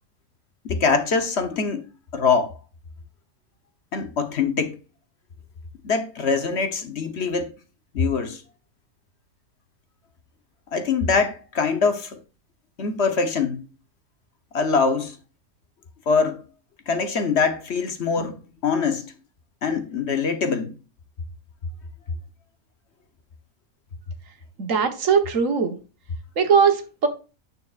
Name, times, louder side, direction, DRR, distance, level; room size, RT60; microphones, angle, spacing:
voice 1, 0.6-1.9 2.1-2.5 3.9-4.7 5.8-7.5 7.9-8.4 10.7-12.2 12.8-13.6 14.5-15.1 16.1-16.4 16.9-18.4 18.6-19.1 19.6-20.8, left 5 dB, 55° left, 1.1 m, -23 dB
voice 2, 24.6-25.8 26.4-27.1, right 6 dB, 65° right, 1.5 m, -20 dB
9.0 x 6.7 x 2.4 m
omnidirectional pair, 1.4 m